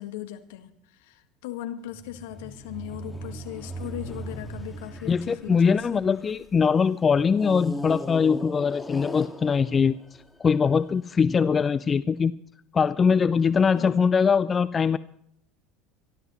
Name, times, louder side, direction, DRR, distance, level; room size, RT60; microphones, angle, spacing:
voice 1, 0.0-6.2 13.7-14.1, left 13 dB, 70° left, 7 dB, 1.7 m, -38 dB
sound 1, 1.9-6.6 7.3-10.7, equal, 10° left, 2.0 m, -38 dB
voice 2, 5.1-10.0 10.4-12.3 12.7-15.0, left 6 dB, 30° left, 16 dB, 0.6 m, -22 dB
25.0 x 13.0 x 3.1 m, 0.70 s
hypercardioid pair, 75°, 0 cm